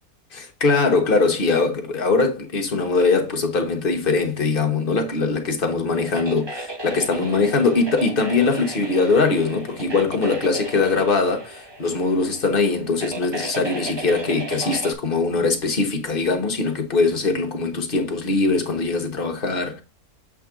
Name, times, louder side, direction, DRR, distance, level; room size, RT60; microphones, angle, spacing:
voice 1, 0.3-19.8, left 4 dB, 40° left, 1.3 m, -21 dB
sound 1, 5.9-14.9, right 2 dB, 25° right, 0.6 m, -35 dB
7.6 x 3.8 x 3.6 m
omnidirectional pair, 1.6 m